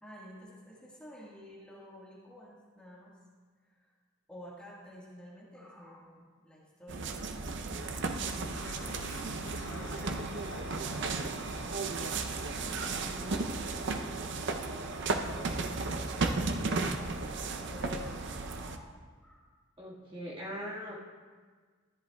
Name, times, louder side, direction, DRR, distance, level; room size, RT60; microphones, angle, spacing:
voice 1, 0.0-3.2 3.6-3.9 4.3-7.2 7.5-12.3 12.8-15.3 15.6-16.5 16.8-19.4, equal, 5° left, -6 dB, 1.5 m, -51 dB
sound 1, 6.9-18.8, right 3 dB, 65° right, 0.6 m, -34 dB
sound 2, 8.5-14.2, left 5 dB, 75° left, 0.4 m, -50 dB
voice 2, 19.8-20.9, equal, 25° right, -5 dB, 1.7 m, -40 dB
13.5 x 10.5 x 2.3 m, 1.5 s
head